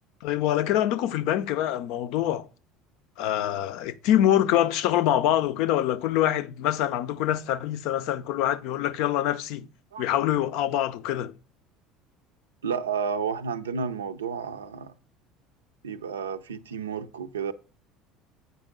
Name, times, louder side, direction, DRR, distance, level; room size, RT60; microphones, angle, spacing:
voice 1, 0.2-2.5 3.2-9.7 10.0-11.3, left 12 dB, 60° left, 0.4 m, -25 dB
voice 2, 12.6-14.9 15.8-17.5, right 6 dB, 80° right, 0.5 m, -31 dB
8.0 x 5.2 x 3.6 m
figure-of-eight pair, 65°, 0 cm